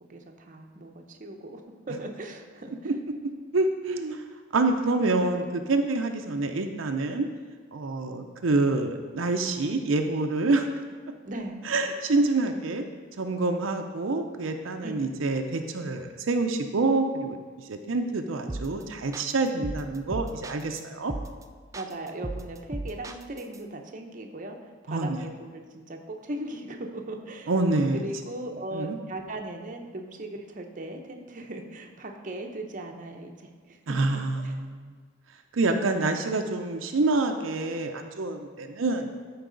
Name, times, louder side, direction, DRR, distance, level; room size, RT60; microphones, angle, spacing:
voice 1, 0.0-1.6 1.9-2.9 11.2-11.7 14.8-15.0 21.7-24.6 24.8-27.5 27.9-33.8 34.4-34.6, right 1 dB, 40° right, 3 dB, 0.7 m, -38 dB
voice 2, 3.5-4.2 4.5-7.3 7.7-10.7 11.6-12.8 13.2-17.4 17.6-21.1 24.9-25.3 27.5-28.0 28.7-29.0 33.9-34.9 35.5-39.1, right 3 dB, 75° right, 5 dB, 0.6 m, -27 dB
sound 1, 18.5-18.8 19.1-20.8 21.1-21.4 21.7-23.6, right 2 dB, 15° right, 0.3 m, -36 dB
13.0 x 4.7 x 3.9 m, 1.5 s
head